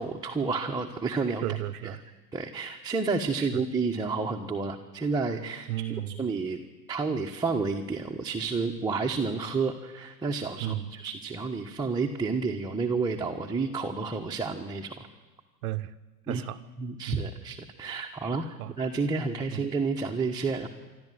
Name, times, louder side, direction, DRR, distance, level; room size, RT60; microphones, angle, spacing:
voice 1, 0.0-1.5 1.8-1.9 2.3-5.7 6.1-6.6 6.9-15.1 16.3-16.4 16.8-18.4 18.8-20.7, right 4 dB, 10° right, 0 dB, 1.3 m, -30 dB
voice 2, 1.4-2.0 3.4-3.6 5.7-6.2 10.6-10.9 15.6-15.9 16.3-16.6 17.1-17.3 18.2-18.7 19.5-19.6, right 14 dB, 60° right, 12 dB, 1.0 m, -34 dB
26.0 x 12.5 x 9.5 m, 1.2 s
hypercardioid pair, 95°, 50 cm